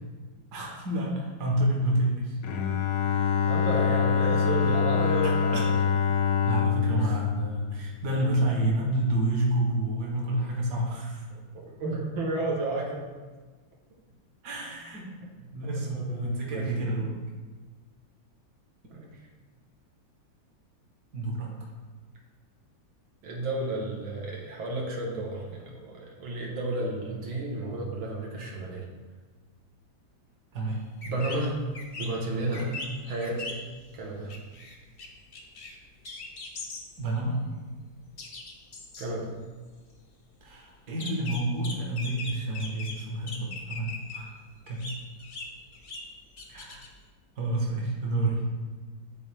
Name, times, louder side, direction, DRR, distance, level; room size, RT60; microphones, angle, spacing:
voice 1, 0.5-2.4 3.1-3.4 5.5-5.6 6.4-11.2 14.4-15.1 15.5-17.2 21.1-21.5 30.5-30.8 32.5-32.7 37.0-37.4 40.4-44.3 44.7-44.8 46.5-46.8 47.4-48.4, right 1 dB, 60° right, -2 dB, 1.8 m, -29 dB
Bowed string instrument, 2.4-8.4, left 7 dB, 90° left, 0.7 m, -25 dB
voice 2, 3.4-5.8 7.0-7.2 11.3-13.0 15.6-16.8 18.9-19.1 23.2-28.9 31.1-31.6 32.0-33.6 33.9-34.4 39.0-39.3, right 2 dB, 90° right, -2 dB, 2.0 m, -32 dB
sound 1, 30.7-30.8 31.0-31.4 31.7-32.1 32.5-33.8 34.3-35.1 35.3-35.8 36.0-37.0 37.3-37.4 38.2-39.1 41.0-43.0 43.3-44.2 44.5-46.1 46.4-47.0, left 3 dB, 55° left, 0.6 m, -40 dB
10.5 x 4.1 x 3.3 m, 1.4 s
omnidirectional pair, 2.1 m